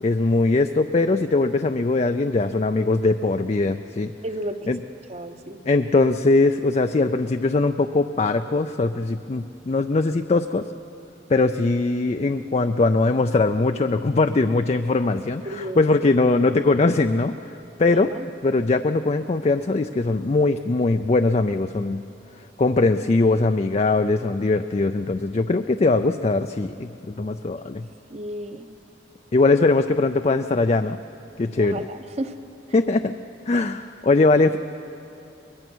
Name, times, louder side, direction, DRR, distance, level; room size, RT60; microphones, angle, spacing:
voice 1, 0.0-4.1 4.7-4.8 5.7-10.7 11.3-17.3 17.8-18.1 18.4-22.0 22.6-27.9 29.3-31.0 31.4-31.9 32.7-33.1 33.5-34.6, left 3 dB, 35° left, 8 dB, 0.4 m, -21 dB
voice 2, 4.2-4.7 5.1-5.6 15.4-15.8 17.9-18.0 28.1-28.6 31.6-32.4, right 1 dB, 35° right, 9 dB, 0.9 m, -32 dB
23.5 x 20.5 x 6.2 m, 2.8 s
head